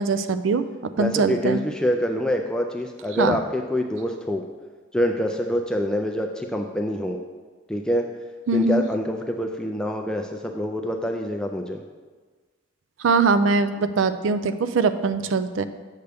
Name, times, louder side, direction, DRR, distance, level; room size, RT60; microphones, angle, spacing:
voice 1, 0.0-1.6 3.2-3.4 8.5-8.8 13.0-15.6, right 4 dB, 70° right, 11 dB, 0.4 m, -22 dB
voice 2, 1.0-4.4 4.9-7.2 7.7-8.1 8.5-11.8, left 1 dB, 5° left, 2 dB, 0.3 m, -26 dB
8.0 x 6.6 x 3.4 m, 1.4 s
head